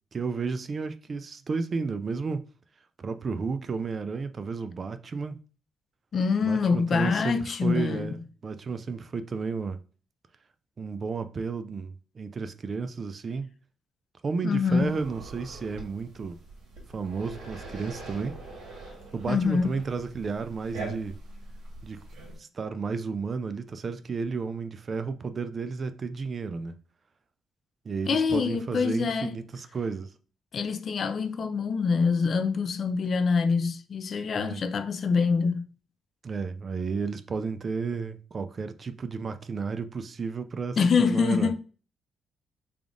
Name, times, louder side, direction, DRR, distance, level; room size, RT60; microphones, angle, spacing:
voice 1, 0.1-2.4 3.0-5.4 6.4-9.8 10.8-13.5 14.2-16.4 16.9-18.3 19.1-21.2 21.8-22.0 22.4-26.7 27.9-30.1 34.4-34.6 36.2-40.8 41.1-41.5, right 5 dB, 40° right, 0.4 m, -32 dB
voice 2, 6.1-8.2 14.4-14.9 19.3-19.7 28.1-29.4 30.5-35.7 40.8-41.6, left 5 dB, 50° left, 0.4 m, -25 dB
sound 1, 14.8-22.4, right 2 dB, 85° right, 1.4 m, -43 dB
3.4 x 2.4 x 3.7 m
cardioid pair, 90°, 0 cm